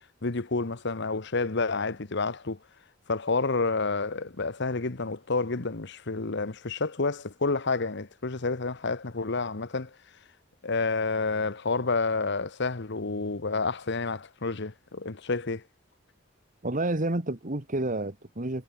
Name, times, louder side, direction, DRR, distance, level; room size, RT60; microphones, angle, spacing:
voice 1, 0.2-2.6 3.1-9.9 10.6-15.6, left 3 dB, 60° left, 1.3 m, -29 dB
voice 2, 16.6-18.6, right 2 dB, 40° right, 1.8 m, -29 dB
head